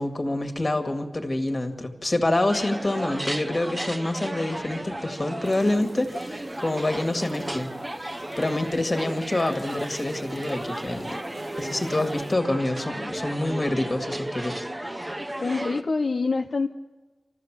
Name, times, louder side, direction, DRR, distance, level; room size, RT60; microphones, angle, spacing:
voice 1, 0.0-7.7 8.1-11.2 11.6-15.0, left 1 dB, 30° left, 6 dB, 1.9 m, -27 dB
sound 1, 2.5-15.8, right 1 dB, 15° right, 0.9 m, -34 dB
sound 2, 5.4-12.4, right 2 dB, 55° right, 1.8 m, -44 dB
voice 2, 15.4-16.7, left 4 dB, 55° left, 4 dB, 0.7 m, -26 dB
28.5 x 13.5 x 7.5 m, 1.2 s
wide cardioid pair, 95°, 0 cm